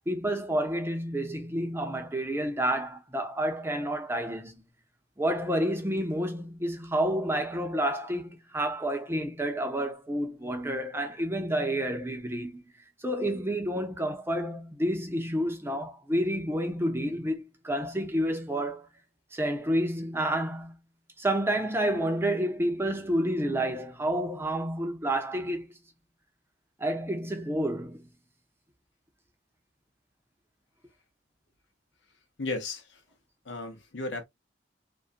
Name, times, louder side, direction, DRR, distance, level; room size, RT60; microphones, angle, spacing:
voice 1, 0.1-4.6 5.2-12.6 13.0-18.9 19.3-20.8 21.2-25.7 26.8-28.1, right 1 dB, 15° right, 0.6 m, -29 dB
voice 2, 32.4-33.0 33.4-34.2, left 2 dB, 85° left, 0.8 m, -35 dB
2.5 x 2.2 x 2.4 m
head